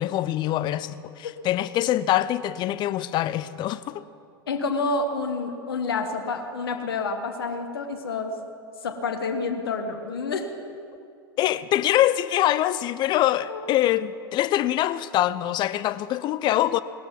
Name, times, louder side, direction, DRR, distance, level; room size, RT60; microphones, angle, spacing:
voice 1, 0.0-4.0 11.4-16.8, left 13 dB, 35° left, 0.6 m, -24 dB
voice 2, 4.5-8.3 8.8-10.5 13.5-13.6, left 4 dB, 70° left, 1.5 m, -28 dB
19.0 x 13.0 x 5.3 m
figure-of-eight pair, 90°, 13 cm